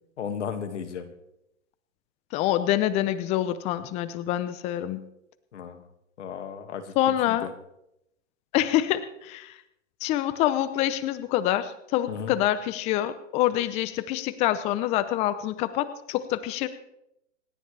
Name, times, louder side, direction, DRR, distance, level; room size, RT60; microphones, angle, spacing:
voice 1, 0.2-1.1 5.5-5.8 6.2-7.5 12.1-12.3, left 7 dB, 65° left, 8 dB, 2.1 m, -35 dB
voice 2, 2.3-5.0 7.0-7.5 8.5-9.5 10.0-16.7, left 13 dB, 15° left, 13 dB, 0.6 m, -26 dB
27.0 x 10.0 x 3.4 m, 0.81 s
hypercardioid pair, 140°, 38 cm